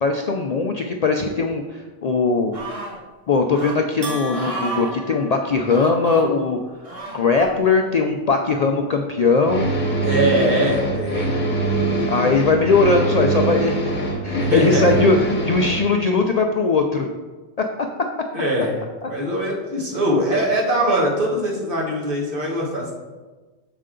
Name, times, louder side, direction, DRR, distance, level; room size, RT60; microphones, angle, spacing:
voice 1, 0.0-2.6 3.3-6.6 7.1-9.7 12.1-13.7 14.2-17.1 17.6-17.7 19.0-19.1, left 4 dB, 90° left, 3 dB, 0.3 m, -19 dB
sound 1, 2.5-3.0 3.5-3.8 4.3-4.9 5.7-6.3 6.8-7.5 8.3-8.4, right 3 dB, 30° right, 1.0 m, -32 dB
Bell, 4.0-6.2, equal, 65° right, 1.3 m, -35 dB
sound 2, 9.4-15.8, right 2 dB, 40° left, 1.0 m, -23 dB
voice 2, 10.0-11.3 14.4-14.9 18.3-18.8 19.1-22.9, right 1 dB, 45° right, -3 dB, 1.6 m, -22 dB
6.6 x 5.1 x 3.7 m, 1.3 s
omnidirectional pair, 1.2 m